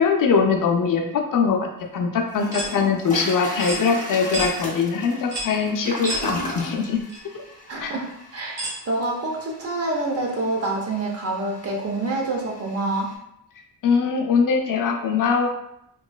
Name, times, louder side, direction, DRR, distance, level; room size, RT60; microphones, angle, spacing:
voice 1, 0.0-7.0 7.3-7.4 7.8-7.9 13.8-15.5, left 5 dB, 55° left, 3 dB, 0.5 m, -22 dB
Toilet flush, 1.8-1.9 2.3-13.1, left 1 dB, 20° left, 0.7 m, -36 dB
sound 1, 2.5-2.7 3.6-3.8 4.3-4.5 5.3-5.6 6.0-6.3 7.1-7.2 8.6-8.8, right 1 dB, 55° right, 1.1 m, -29 dB
voice 2, 7.7-8.1 8.3-13.1, right 2 dB, 40° right, 0 dB, 0.6 m, -27 dB
3.0 x 3.0 x 2.2 m, 0.77 s
wide cardioid pair, 145°, 38 cm